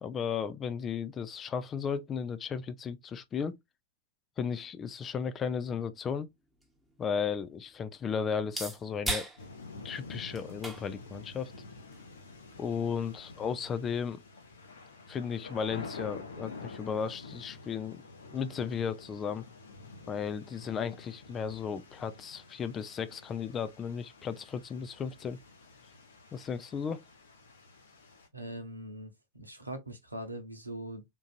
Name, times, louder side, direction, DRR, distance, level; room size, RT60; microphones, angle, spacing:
voice 1, 0.0-3.6 4.4-6.3 7.0-9.3 9.8-11.5 12.6-14.2 15.1-18.0 18.3-19.5 20.1-25.4 26.3-27.0, left 6 dB, 25° left, 0.4 m, -35 dB
sound 1, 6.0-14.0, right 1 dB, 5° right, 1.0 m, -43 dB
sound 2, 9.4-28.3, left 3 dB, 70° left, 0.9 m, -49 dB
voice 2, 28.3-31.0, right 1 dB, 85° right, 0.8 m, -42 dB
3.8 x 2.6 x 2.3 m
figure-of-eight pair, 90°, 0 cm